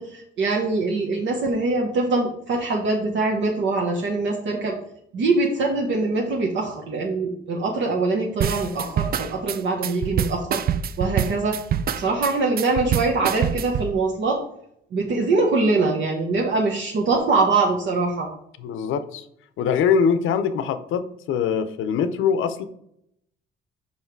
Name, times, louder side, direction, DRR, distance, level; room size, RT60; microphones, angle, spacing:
voice 1, 0.0-4.8 5.1-10.6 11.0-11.6 12.0-14.4 14.9-18.3, right 3 dB, 70° right, -1 dB, 1.1 m, -23 dB
sound 1, 8.4-13.9, right 9 dB, 50° right, 0.4 m, -25 dB
voice 2, 18.6-19.2 19.6-22.6, left 6 dB, 80° left, 12 dB, 0.6 m, -23 dB
5.7 x 5.3 x 4.5 m, 0.73 s
cardioid pair, 90°, 20 cm